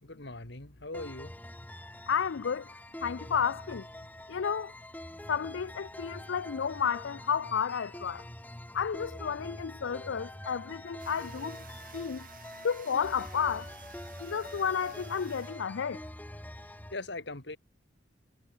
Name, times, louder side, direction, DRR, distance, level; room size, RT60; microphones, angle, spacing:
voice 1, 0.0-1.3 16.6-17.6, left 2 dB, 65° left, 3.1 m, -41 dB
sound 1, 0.9-16.9, left 1 dB, 10° left, 1.7 m, -45 dB
voice 2, 2.1-2.7 3.0-3.8 4.3-4.7 5.3-8.2 8.7-11.6 11.9-12.3 12.6-13.7 14.2-16.0, left 7 dB, 80° left, 0.5 m, -32 dB
sound 2, 11.0-16.2, right 7 dB, 50° right, 7.3 m, -54 dB
head